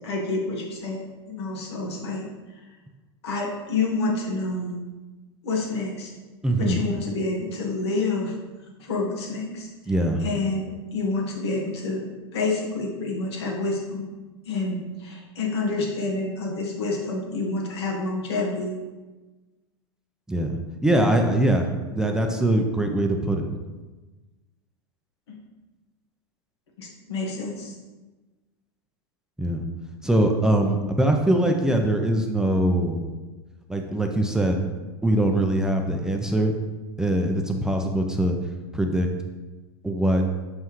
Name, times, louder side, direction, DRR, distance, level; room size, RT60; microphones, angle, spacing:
voice 1, 0.0-2.3 3.2-4.8 5.4-6.1 6.6-8.3 8.8-9.9 10.2-12.1 12.3-14.1 14.4-18.8 25.3-25.4 26.8-27.7, left 3 dB, 80° left, -1 dB, 1.5 m, -28 dB
voice 2, 6.4-6.8 9.9-10.2 20.3-20.5 20.8-23.5 29.4-29.6 30.0-33.0 33.7-34.6 35.0-36.5 37.0-38.4 38.7-39.1 39.8-40.2, right 1 dB, 5° right, 3 dB, 0.5 m, -22 dB
5.5 x 5.5 x 3.1 m, 1.2 s
hypercardioid pair, 110°, 14 cm